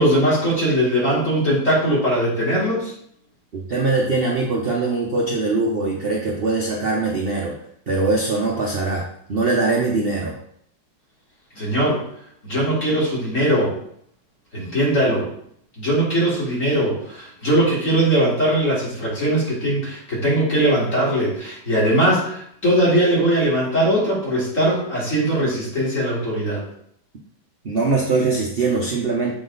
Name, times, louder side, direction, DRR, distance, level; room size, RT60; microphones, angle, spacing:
voice 1, 0.0-2.9 11.6-12.0 12.4-13.7 14.5-15.3 15.8-26.6, right 1 dB, 40° left, -7 dB, 3.0 m, -20 dB
voice 2, 3.5-7.5 7.9-10.4 27.6-29.3, right 3 dB, 55° right, -2 dB, 0.6 m, -22 dB
7.4 x 4.1 x 3.9 m, 0.68 s
omnidirectional pair, 2.2 m